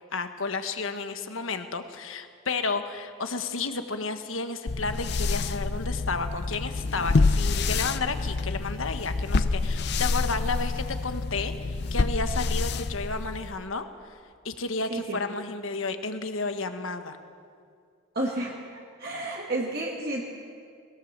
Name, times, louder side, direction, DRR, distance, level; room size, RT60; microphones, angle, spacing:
voice 1, 0.1-13.8 14.4-17.2, left 4 dB, 70° left, 8 dB, 1.3 m, -32 dB
sound 1, 4.7-13.6, left 3 dB, 50° left, 0.6 m, -27 dB
voice 2, 14.9-15.2 18.1-18.5 19.0-20.2, right 1 dB, 45° right, -3 dB, 1.8 m, -30 dB
21.0 x 18.0 x 7.4 m, 2.2 s
head